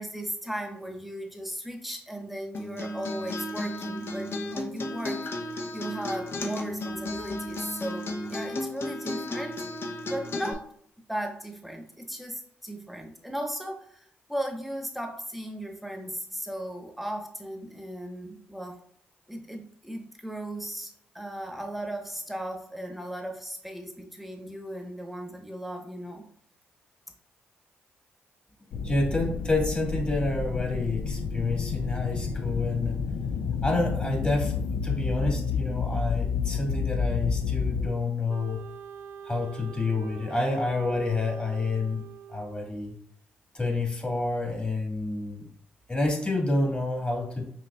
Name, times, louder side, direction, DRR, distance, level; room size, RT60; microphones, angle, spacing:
voice 1, 0.0-5.2 5.7-9.6 10.1-10.6 11.1-18.8 19.3-26.3, right 1 dB, ahead, 3 dB, 1.0 m, -36 dB
Acoustic guitar, 2.5-10.5, left 1 dB, 50° left, 0.7 m, -34 dB
sound 1, 28.7-37.9, left 5 dB, 70° left, 0.3 m, -30 dB
voice 2, 28.8-33.0 33.6-38.6 39.3-42.0 42.3-42.9 43.5-45.5 45.9-47.4, left 2 dB, 25° left, 0 dB, 1.7 m, -28 dB
Wind instrument woodwind instrument, 38.3-42.9, right 8 dB, 70° right, 0.4 m, -45 dB
5.4 x 3.0 x 2.3 m, 0.65 s
hypercardioid pair, 45°, 5 cm